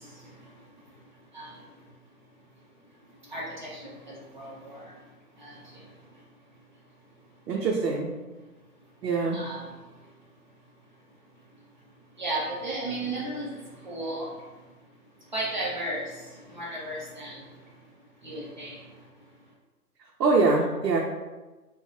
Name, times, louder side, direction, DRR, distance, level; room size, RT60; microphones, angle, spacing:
voice 1, 3.3-4.8 5.4-5.6 9.3-9.7 12.2-13.5 13.8-14.3 15.3-16.2 16.5-17.4 18.2-18.8, right 1 dB, 30° right, -5 dB, 0.5 m, -34 dB
voice 2, 7.5-8.1 9.0-9.4 20.2-21.0, right 3 dB, 80° right, -1 dB, 0.6 m, -23 dB
2.8 x 2.0 x 3.0 m, 1.2 s
figure-of-eight pair, 150°, 47 cm